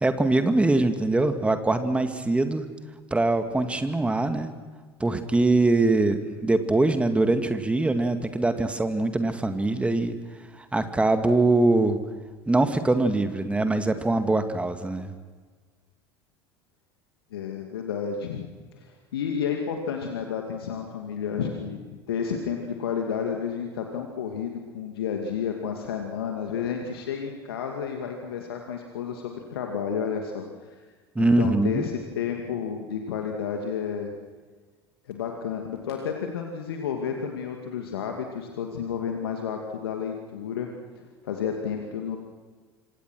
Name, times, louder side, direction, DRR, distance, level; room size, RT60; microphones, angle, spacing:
voice 1, 0.0-2.7 3.1-4.5 5.0-10.1 10.6-12.0 12.5-15.1 31.2-31.8, right 2 dB, 10° right, 8 dB, 2.1 m, -23 dB
voice 2, 17.3-30.4 31.2-34.1 35.1-40.7 41.0-42.2, left 7 dB, 65° left, 3 dB, 2.4 m, -31 dB
27.0 x 25.0 x 6.3 m, 1.4 s
figure-of-eight pair, 75°, 13 cm